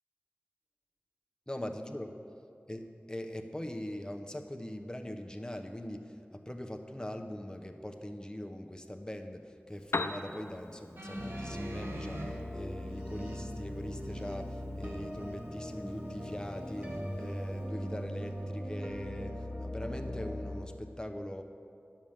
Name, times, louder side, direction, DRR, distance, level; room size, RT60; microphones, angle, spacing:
voice 1, 1.5-2.1 2.7-21.4, left 1 dB, 20° left, 5 dB, 0.8 m, -42 dB
Piano, 9.7-17.7, left 3 dB, 85° left, 0.4 m, -44 dB
sound 1, 11.0-12.3 13.3-13.4, equal, 65° right, 1.8 m, -42 dB
sound 2, 11.1-20.6, equal, 35° right, 1.8 m, -39 dB
10.5 x 6.3 x 7.3 m, 2.6 s
wide cardioid pair, 45°, 4 cm